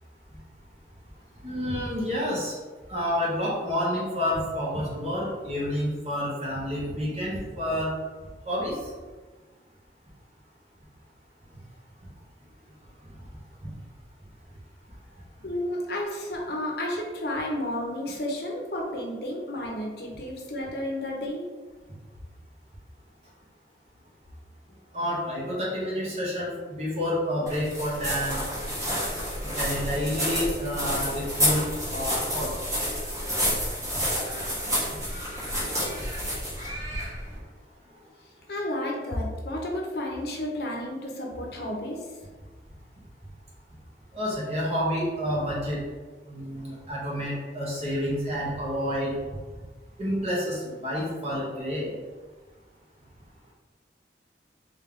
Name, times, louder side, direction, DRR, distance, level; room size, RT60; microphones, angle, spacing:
voice 1, 1.4-2.6 2.9-7.9 8.4-8.9 12.0-12.1 13.6-13.7 24.9-28.5 29.4-32.5 34.9-35.0 44.1-45.8 46.3-49.2 50.0-51.9, equal, 35° right, -5 dB, 1.2 m, -29 dB
voice 2, 15.4-21.5 38.5-42.1, left 1 dB, 60° left, -1 dB, 0.8 m, -32 dB
sound 1, 27.5-37.4, equal, 20° right, 1.2 m, -29 dB
3.5 x 3.2 x 3.7 m, 1.4 s
head